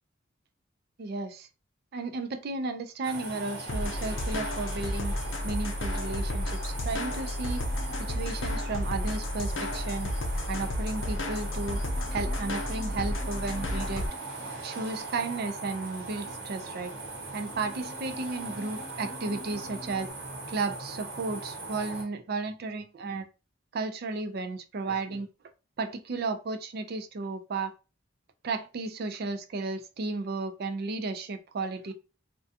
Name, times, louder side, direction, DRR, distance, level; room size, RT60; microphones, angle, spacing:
voice 1, 1.0-1.5 1.9-5.1 5.4-7.6 8.0-10.1 10.5-11.8 12.1-14.0 14.6-16.9 17.3-20.1 20.5-23.3 23.7-25.3 25.8-27.7 28.4-31.9, right 3 dB, 55° right, 0.4 m, -34 dB
sound 1, 3.0-22.0, right 3 dB, 70° right, 1.0 m, -40 dB
sound 2, 3.7-14.1, left 1 dB, 90° left, 0.6 m, -32 dB
sound 3, 7.6-20.1, left 2 dB, 20° left, 0.5 m, -51 dB
2.4 x 2.2 x 2.6 m
head